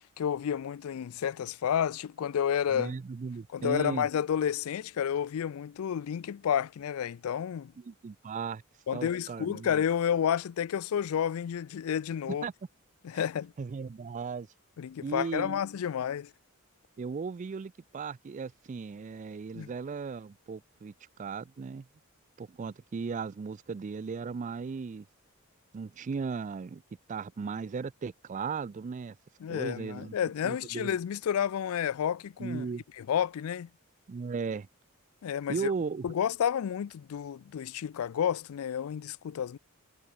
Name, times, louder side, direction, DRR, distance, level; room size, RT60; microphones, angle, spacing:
voice 1, 0.2-2.9 3.5-7.7 8.9-12.5 13.0-13.5 14.8-16.3 19.5-19.7 29.4-32.7 33.0-33.7 35.2-35.7 36.0-39.6, left 8 dB, 80° left, 0.4 m, -30 dB
voice 2, 2.7-4.1 7.8-8.6 8.9-9.8 12.4-12.5 13.1-13.2 13.6-14.5 15.0-15.6 17.0-20.9 21.2-21.9 22.4-25.1 25.7-26.8 27.1-29.2 29.5-30.1 30.4-31.0 32.4-32.8 34.1-34.7 35.5-36.1, right 5 dB, 35° right, 0.3 m, -36 dB
head